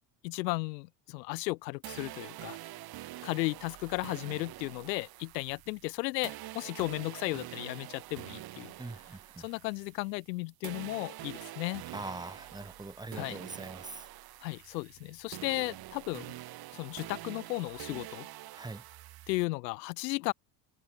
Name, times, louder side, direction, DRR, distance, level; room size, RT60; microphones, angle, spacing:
voice 1, 0.2-2.6 3.2-8.7 9.4-11.8 13.1-13.4 14.4-16.3 16.7-18.3 19.3-20.3, left 23 dB, 85° left, 1.4 m, -35 dB
sound 1, 1.8-10.3 10.6-19.4, right 15 dB, 45° right, 1.7 m, -46 dB
voice 2, 8.8-9.5 11.9-14.1 18.5-18.8, right 2 dB, 10° right, 1.2 m, -42 dB
supercardioid pair, 110°, 49 cm